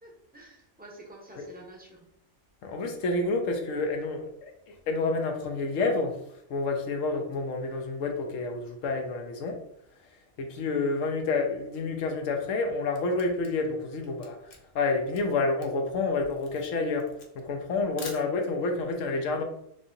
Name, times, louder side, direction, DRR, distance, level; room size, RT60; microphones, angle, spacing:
voice 1, 0.0-2.1, right 1 dB, 10° right, -2 dB, 0.7 m, -49 dB
voice 2, 2.6-9.6 10.4-17.1 17.3-19.4, left 3 dB, 80° left, 4 dB, 1.1 m, -29 dB
Camera, 13.0-18.7, left 4 dB, 60° left, 0.9 m, -48 dB
4.7 x 2.7 x 2.6 m, 0.74 s
omnidirectional pair, 1.3 m